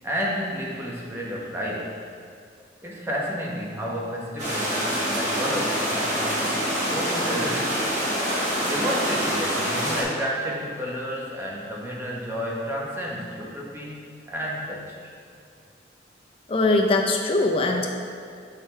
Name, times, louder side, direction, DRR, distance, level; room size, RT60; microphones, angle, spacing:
voice 1, 0.0-2.1 2.8-6.5 6.8-7.8 8.7-15.1, equal, 15° right, -4 dB, 0.9 m, -31 dB
sound 1, 4.4-10.0, equal, 40° right, 1.2 m, -26 dB
voice 2, 16.5-17.9, left 2 dB, 30° left, 2 dB, 0.5 m, -21 dB
6.4 x 5.6 x 3.2 m, 2.3 s
head